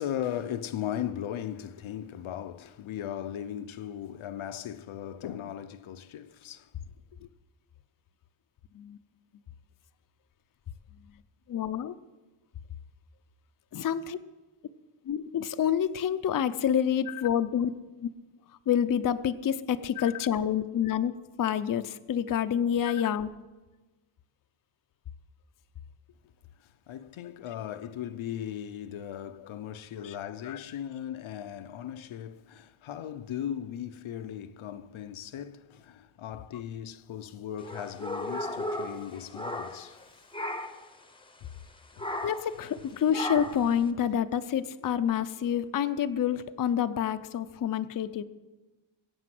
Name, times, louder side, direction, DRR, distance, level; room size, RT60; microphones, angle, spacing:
voice 1, 0.0-6.7 7.2-7.3 26.6-40.0 41.9-42.1, left 10 dB, 80° left, 0.8 m, -38 dB
voice 2, 11.5-11.9 13.7-14.2 15.1-18.1 18.7-23.3 30.0-30.1 30.4-30.6 42.2-48.2, left 9 dB, 45° left, 0.6 m, -28 dB
sound 1, 37.6-40.0 40.3-40.9 42.0-42.5 43.1-43.7, left 1 dB, 10° left, 0.8 m, -35 dB
21.0 x 8.7 x 7.7 m
wide cardioid pair, 170°, 48 cm